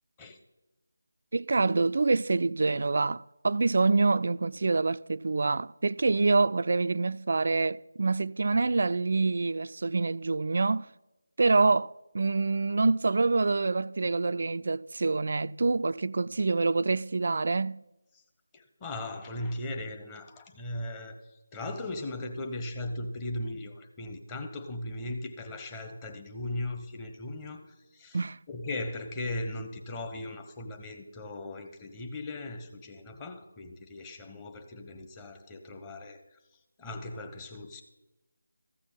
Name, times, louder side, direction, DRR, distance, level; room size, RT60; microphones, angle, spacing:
voice 1, 1.3-10.9 11.4-17.8 28.1-28.4, right 3 dB, 55° right, 0.3 m, -26 dB
voice 2, 18.5-28.2 28.5-37.8, left 1 dB, 15° left, 1.0 m, -38 dB
14.5 x 6.1 x 7.6 m
figure-of-eight pair, 160°, 0 cm